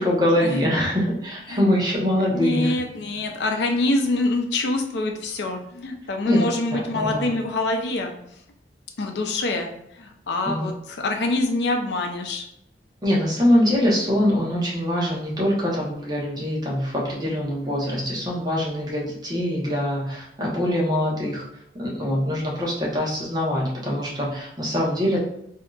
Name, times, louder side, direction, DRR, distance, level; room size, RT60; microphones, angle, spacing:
voice 1, 0.0-2.7 6.3-7.3 10.4-10.7 13.0-21.4 21.8-25.2, equal, 25° right, -5 dB, 1.0 m, -23 dB
voice 2, 2.3-8.1 9.0-9.7 10.0-12.4, left 2 dB, 70° left, 3 dB, 0.5 m, -25 dB
3.5 x 2.7 x 2.4 m, 0.77 s
head